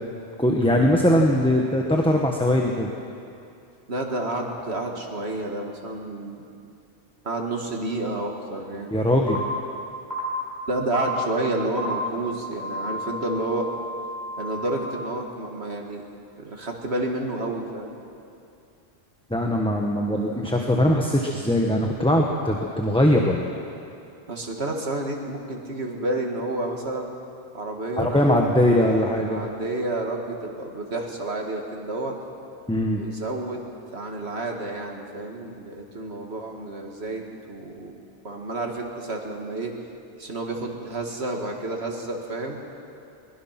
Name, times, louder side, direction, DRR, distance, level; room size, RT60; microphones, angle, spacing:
voice 1, 0.4-2.9 8.9-9.4 19.3-23.6 28.0-29.4 32.7-33.0, left 1 dB, 5° left, 0 dB, 1.2 m, -21 dB
voice 2, 3.9-6.5 7.2-8.9 10.7-13.7 14.4-16.0 16.4-18.0 24.3-27.1 27.5-32.2 32.9-37.9 38.2-39.7 40.2-42.6, right 2 dB, 70° right, 1 dB, 2.4 m, -30 dB
sound 1, 9.3-9.4 10.1-10.2 10.9-11.0 11.8-11.9 12.5-14.6, equal, 15° right, 5.3 m, -33 dB
22.5 x 20.0 x 6.0 m, 2.6 s
omnidirectional pair, 1.1 m